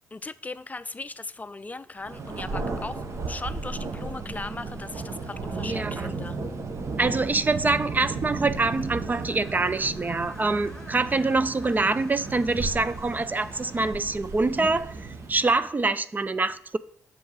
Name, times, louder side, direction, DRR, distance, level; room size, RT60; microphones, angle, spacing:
voice 1, 0.1-6.4, left 3 dB, 25° left, 0.5 m, -38 dB
Thunder, 2.0-15.7, right 3 dB, 50° right, 1.2 m, -35 dB
voice 2, 5.6-6.1 7.0-16.8, right 3 dB, 30° right, 0.5 m, -25 dB
Screech, 8.5-14.0, left 2 dB, 10° left, 1.5 m, -49 dB
7.0 x 6.1 x 4.8 m
hypercardioid pair, 50°, 6 cm